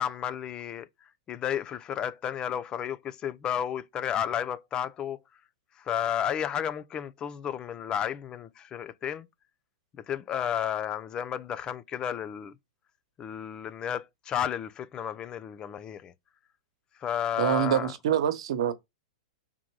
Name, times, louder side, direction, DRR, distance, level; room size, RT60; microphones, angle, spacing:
voice 1, 0.0-5.2 5.8-9.3 10.0-12.6 13.2-16.1 17.0-17.9, left 9 dB, 25° left, 0.6 m, -32 dB
voice 2, 17.4-18.7, right 10 dB, 70° right, 1.2 m, -25 dB
5.8 x 3.8 x 4.8 m
hypercardioid pair, 125°, 3 cm